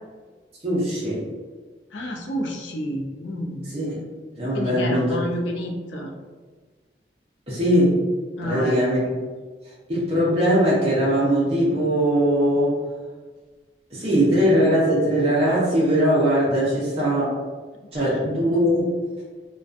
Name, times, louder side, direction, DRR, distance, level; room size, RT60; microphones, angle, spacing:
voice 1, 0.6-1.2 3.7-3.9 4.4-5.2 7.5-8.0 8.4-9.0 9.9-12.8 13.9-17.3 17.9-18.9, equal, 30° right, -7 dB, 0.5 m, -20 dB
voice 2, 1.9-3.6 4.5-6.1 8.4-8.8 17.9-18.2, equal, 80° left, 2 dB, 0.4 m, -30 dB
2.5 x 2.2 x 2.4 m, 1.4 s
head